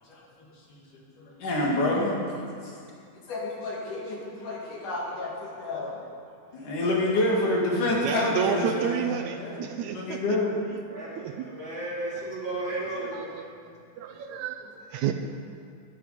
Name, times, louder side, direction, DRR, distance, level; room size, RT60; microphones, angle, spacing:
voice 1, 1.4-2.7 3.3-6.0 6.5-9.1 9.4-9.7 9.9-10.6, left 2 dB, 80° left, -4 dB, 4.2 m, -28 dB
voice 2, 7.9-10.4 10.7-10.8 11.2-11.5 13.0-13.4 14.0-15.1, right 8 dB, 75° right, 6 dB, 1.9 m, -31 dB
voice 3, 9.2-9.6 10.9-13.5, right 2 dB, 20° right, -7 dB, 3.6 m, -35 dB
21.0 x 10.0 x 5.1 m, 2.4 s
omnidirectional pair, 3.5 m